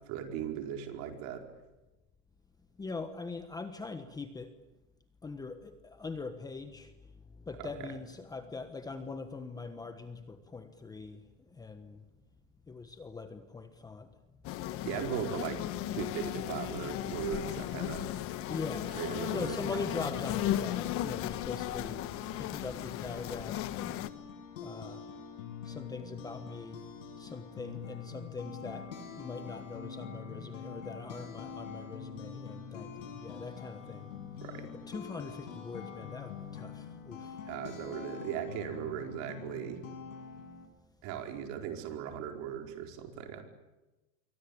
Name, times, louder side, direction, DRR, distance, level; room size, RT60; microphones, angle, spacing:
voice 1, 0.1-1.4 7.6-7.7 14.8-15.6 15.9-18.1 18.9-19.6 34.4-34.7 37.5-39.8 41.0-43.4, right 9 dB, 45° right, 4 dB, 4.8 m, -38 dB
voice 2, 2.8-4.5 5.2-12.0 12.7-14.1 18.5-18.9 19.3-22.1 22.4-23.7 24.6-25.1 25.6-26.8 27.2-28.9 29.1-34.1 34.9-37.4, left 4 dB, 10° left, 8 dB, 1.2 m, -42 dB
sound 1, 14.4-24.1, left 12 dB, 35° left, 1.3 m, -36 dB
sound 2, 23.7-40.7, left 6 dB, 75° left, 8.0 m, -45 dB
sound 3, 24.1-36.1, left 2 dB, 5° right, 5.0 m, -57 dB
28.0 x 23.5 x 8.6 m, 1.1 s
supercardioid pair, 150°, 39 cm